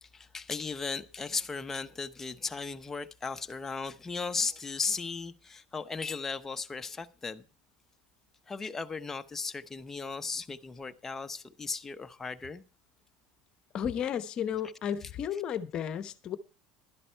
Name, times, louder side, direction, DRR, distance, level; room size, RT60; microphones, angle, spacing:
voice 1, 0.0-7.5 8.5-12.6, left 4 dB, 15° left, 0.8 m, -36 dB
voice 2, 13.7-16.4, left 8 dB, 45° left, 0.9 m, -33 dB
11.5 x 11.0 x 4.5 m
supercardioid pair, 115°, 2 cm